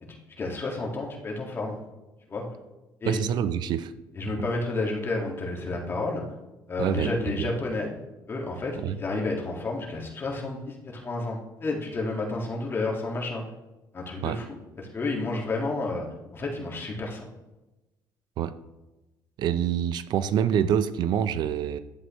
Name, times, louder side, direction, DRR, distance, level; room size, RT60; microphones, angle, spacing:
voice 1, 0.0-1.8 2.3-2.4 3.0-3.2 4.2-6.2 6.7-7.9 8.3-13.4 13.9-16.1 16.3-17.3, left 2 dB, 30° left, -1 dB, 1.9 m, -31 dB
voice 2, 3.1-3.9 6.8-7.1 7.4-7.5 8.7-9.0 14.2-14.4 18.4-18.5 19.4-21.8, right 9 dB, 65° right, 13 dB, 0.5 m, -26 dB
11.0 x 7.8 x 3.1 m, 1.0 s
cardioid pair, 135°, 8 cm